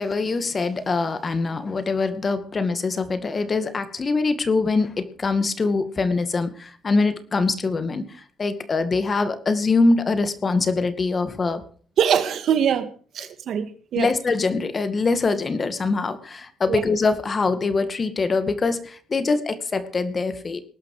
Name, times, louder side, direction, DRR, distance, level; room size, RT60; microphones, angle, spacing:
voice 1, 0.0-11.6 13.9-20.6, left 3 dB, 35° left, 2.2 m, -23 dB
voice 2, 12.0-14.1 16.7-16.8, right 8 dB, 70° right, 2.0 m, -23 dB
19.5 x 12.0 x 5.0 m
cardioid pair, 90°, 0 cm